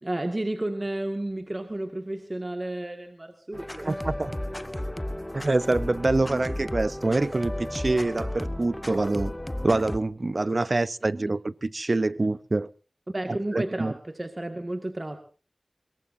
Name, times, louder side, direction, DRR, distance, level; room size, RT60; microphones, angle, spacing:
voice 1, 0.0-4.0 13.1-15.2, right 1 dB, 40° right, 2.0 m, -32 dB
sound 1, 3.5-10.0, left 1 dB, 20° left, 1.1 m, -33 dB
voice 2, 3.8-4.3 5.3-9.3 9.6-12.7 13.5-13.9, right 2 dB, 60° right, 0.7 m, -25 dB
22.5 x 22.0 x 2.7 m
wide cardioid pair, 45°, 0 cm